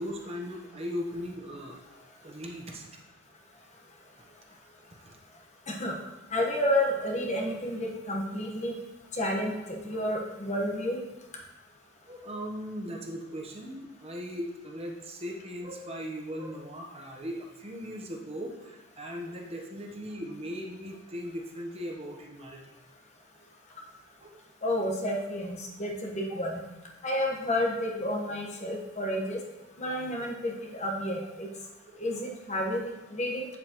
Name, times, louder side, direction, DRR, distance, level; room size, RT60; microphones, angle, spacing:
voice 1, 0.0-1.8 2.2-2.9 4.2-4.3 5.1-5.2 12.1-22.7 24.2-24.4 31.8-32.0, equal, 30° right, 0 dB, 0.9 m, -38 dB
voice 2, 6.3-8.7 9.1-11.0 24.6-26.6 27.0-29.4 29.8-31.5 32.0-32.8 33.1-33.5, left 1 dB, 35° left, -1 dB, 1.2 m, -30 dB
8.9 x 7.4 x 3.0 m, 1.0 s
head